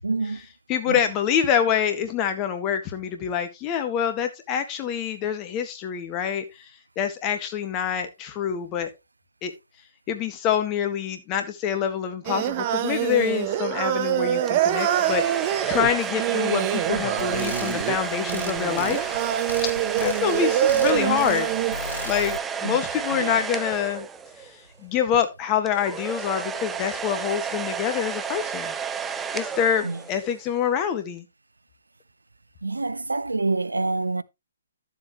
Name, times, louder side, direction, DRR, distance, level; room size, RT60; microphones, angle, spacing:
voice 1, 0.0-0.4 0.9-1.0 22.6-22.8 23.1-23.4 29.8-30.0 32.6-34.2, right 3 dB, 80° right, 0.7 m, -27 dB
voice 2, 0.7-6.5 7.0-8.9 9.4-9.5 10.1-19.2 20.0-21.5 22.0-24.1 24.8-28.7 29.3-31.2, left 8 dB, 25° left, 1.7 m, -26 dB
Singing, 12.2-21.7, right 12 dB, 35° right, 0.9 m, -25 dB
sound 1, 14.5-24.6 25.7-30.4, right 6 dB, 10° right, 0.6 m, -32 dB
sound 2, 17.2-22.4, left 2 dB, 85° left, 0.7 m, -37 dB
12.5 x 7.4 x 3.1 m
figure-of-eight pair, 130°, 0 cm